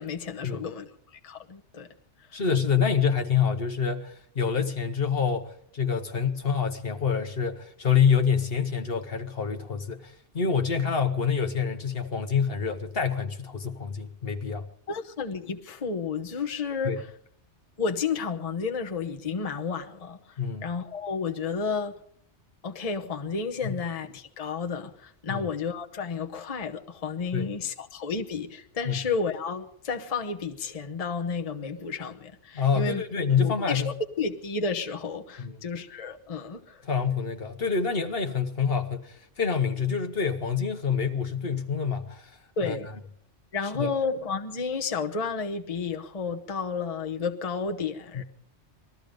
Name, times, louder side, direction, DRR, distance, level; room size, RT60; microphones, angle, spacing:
voice 1, 0.0-1.9 2.3-2.4 14.9-17.1 17.8-21.9 22.6-33.0 33.4-36.8 42.6-42.9 43.5-48.2, left 5 dB, 35° left, 1.0 m, -32 dB
voice 2, 2.3-14.6 16.8-17.0 20.4-20.6 23.6-23.8 25.3-25.5 27.3-27.5 28.8-29.0 32.5-33.9 35.4-35.6 36.8-42.8 43.7-43.9 48.1-48.2, left 6 dB, 55° left, 1.2 m, -27 dB
20.5 x 13.5 x 5.2 m
omnidirectional pair, 1.2 m